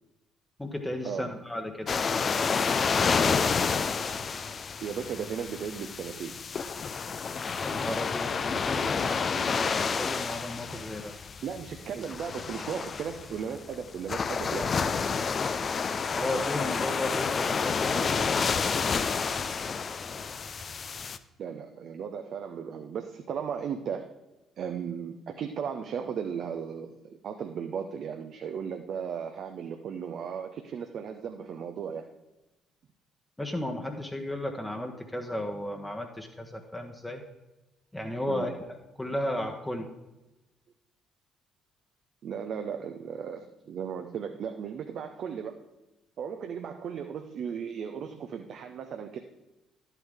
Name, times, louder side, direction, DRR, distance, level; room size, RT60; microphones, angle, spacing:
voice 1, 0.6-1.9 7.6-11.0 16.1-18.5 33.4-37.2 37.9-38.5 39.0-39.9, left 1 dB, 10° left, 2 dB, 1.1 m, -34 dB
sound 1, 1.9-21.2, left 5 dB, 40° left, 0.5 m, -29 dB
voice 2, 4.8-6.4 11.4-14.7 21.4-24.1 24.6-32.1 38.2-38.5 42.2-45.6 46.2-49.2, right 7 dB, 55° right, 5 dB, 0.6 m, -36 dB
11.5 x 8.3 x 3.6 m, 1.0 s
figure-of-eight pair, 50°, 0 cm